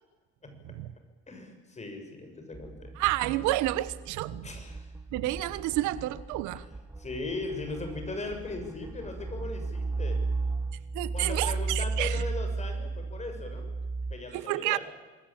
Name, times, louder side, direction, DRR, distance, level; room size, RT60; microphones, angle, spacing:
voice 1, 1.3-2.9 4.4-4.9 6.5-6.7 7.0-10.2 11.1-13.8 14.1-14.8, left 3 dB, 25° left, 5 dB, 7.0 m, -38 dB
sound 1, 2.5-14.1, right 3 dB, 10° right, 0.9 m, -35 dB
voice 2, 3.0-4.5 5.1-6.6 10.9-12.2 14.3-14.8, right 16 dB, 85° right, 16 dB, 1.2 m, -30 dB
26.5 x 20.5 x 8.9 m, 1.3 s
cardioid pair, 120°, 29 cm